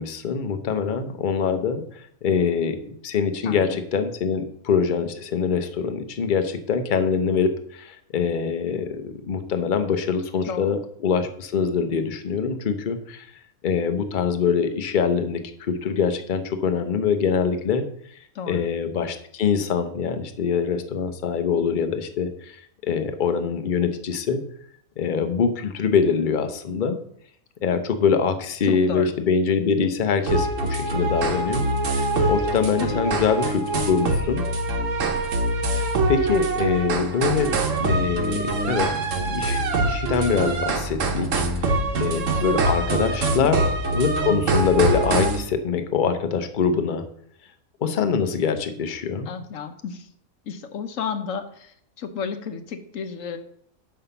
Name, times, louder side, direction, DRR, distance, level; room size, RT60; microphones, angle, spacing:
voice 1, 0.0-13.3 13.6-17.8 18.5-24.4 25.0-27.0 27.6-34.4 35.7-38.9 39.2-43.6 43.9-47.0 47.8-49.3, left 6 dB, 45° left, 9 dB, 0.7 m, -24 dB
voice 2, 3.4-3.8 10.5-10.8 18.4-18.6 28.7-29.1 32.8-33.0 43.4-43.6 49.3-50.0 50.5-51.7 52.0-53.4, left 6 dB, 65° left, 8 dB, 1.1 m, -32 dB
sound 1, 30.3-45.4, right 2 dB, 60° right, 1.3 m, -24 dB
5.7 x 5.5 x 6.8 m, 0.67 s
omnidirectional pair, 1.5 m